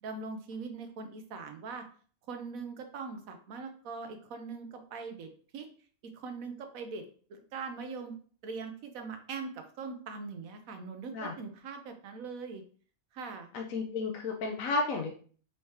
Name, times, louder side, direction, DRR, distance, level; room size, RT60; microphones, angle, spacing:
voice 1, 0.0-1.9 2.3-5.7 6.0-7.0 7.3-8.2 8.4-12.6 13.1-13.5, right 4 dB, 80° right, 6 dB, 1.1 m, -41 dB
voice 2, 13.5-15.1, left 3 dB, 75° left, 1 dB, 1.0 m, -32 dB
4.5 x 3.2 x 2.8 m, 0.44 s
omnidirectional pair, 1.5 m